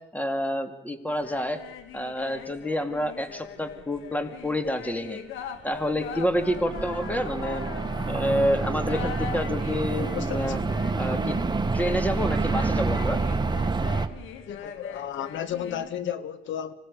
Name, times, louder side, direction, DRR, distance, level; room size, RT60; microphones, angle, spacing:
voice 1, 0.1-1.6 1.9-5.2 5.6-7.7 8.1-10.6 11.0-11.4 11.7-13.2, equal, 10° left, 2.4 m, -28 dB
sound 1, 1.1-15.9, left 8 dB, 85° left, 1.8 m, -41 dB
sound 2, 5.8-14.1, right 3 dB, 20° right, 1.5 m, -28 dB
voice 2, 10.0-10.4 14.5-16.7, left 9 dB, 70° left, 1.7 m, -33 dB
25.5 x 17.5 x 6.8 m
cardioid pair, 90°, 20 cm